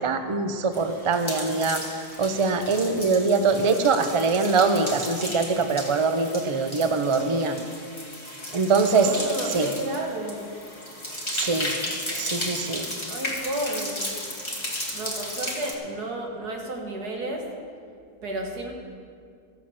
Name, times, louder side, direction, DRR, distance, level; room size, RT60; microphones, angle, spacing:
voice 1, 0.0-7.5 8.5-9.1 9.5-9.7 11.3-11.7 12.1-12.9, right 4 dB, 40° right, 8 dB, 0.4 m, -23 dB
sound 1, 0.7-15.7, left 1 dB, 20° left, 1.6 m, -34 dB
voice 2, 7.0-7.7 8.9-10.5 13.1-14.2 14.9-17.5 18.2-18.7, right 1 dB, 85° right, 1 dB, 2.2 m, -32 dB
14.5 x 7.6 x 7.2 m, 2.3 s
omnidirectional pair, 1.6 m